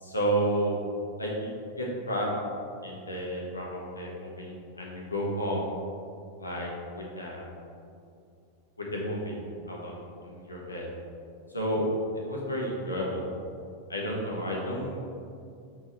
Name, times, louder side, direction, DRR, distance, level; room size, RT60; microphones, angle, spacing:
voice 1, 0.0-0.7 1.2-1.5 1.8-2.3 2.8-5.7 6.4-7.4 8.8-9.4 9.7-10.9 11.5-11.9 12.1-13.2 13.9-15.0, equal, 80° left, -3 dB, 1.3 m, -31 dB
6.1 x 4.6 x 4.4 m, 2.4 s
figure-of-eight pair, 90°, 0 cm